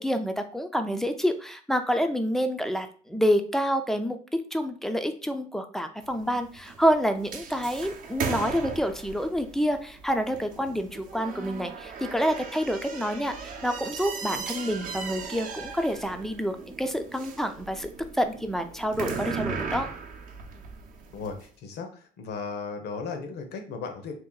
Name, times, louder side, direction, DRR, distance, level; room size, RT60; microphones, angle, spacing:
voice 1, 0.0-4.2 4.5-17.9 18.2-19.9, equal, ahead, 7 dB, 0.4 m, -28 dB
sound 1, 6.0-21.4, right 5 dB, 55° right, 0.6 m, -37 dB
voice 2, 21.6-24.1, left 5 dB, 75° left, 5 dB, 0.8 m, -35 dB
2.8 x 2.5 x 3.8 m, 0.42 s
cardioid pair, 110°, 17 cm